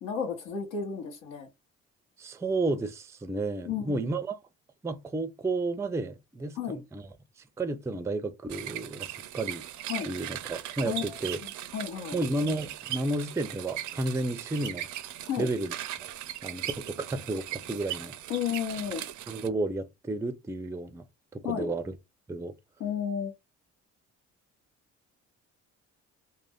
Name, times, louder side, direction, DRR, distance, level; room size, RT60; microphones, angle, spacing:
voice 1, 0.0-1.5 3.6-4.1 6.5-6.8 9.9-10.1 10.8-12.2 15.2-15.5 18.3-19.0 21.4-21.7 22.8-23.3, left 8 dB, 85° left, 1.0 m, -33 dB
voice 2, 2.2-4.4 4.8-6.6 6.9-7.0 7.6-9.6 10.1-11.4 12.1-14.9 15.4-15.7 16.4-18.1 19.3-21.1 21.3-21.9 22.3-22.5, right 2 dB, 10° right, 0.4 m, -32 dB
sound 1, 8.5-19.5, right 12 dB, 70° right, 0.4 m, -39 dB
2.5 x 2.1 x 3.3 m
cardioid pair, 90°, 30 cm